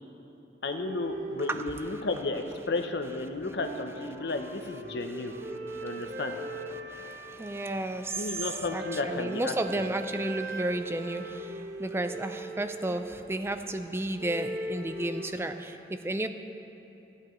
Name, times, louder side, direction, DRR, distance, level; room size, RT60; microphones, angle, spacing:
voice 1, 0.6-5.3 5.8-6.4 8.2-9.5, left 3 dB, 70° left, 6 dB, 0.7 m, -33 dB
sound 1, 0.6-3.1 3.3-13.5 14.2-15.3, right 1 dB, 75° right, 0.8 m, -40 dB
voice 2, 5.0-6.3 6.7-16.3, right 1 dB, 15° right, 8 dB, 0.4 m, -33 dB
14.5 x 11.5 x 3.1 m, 3.0 s
head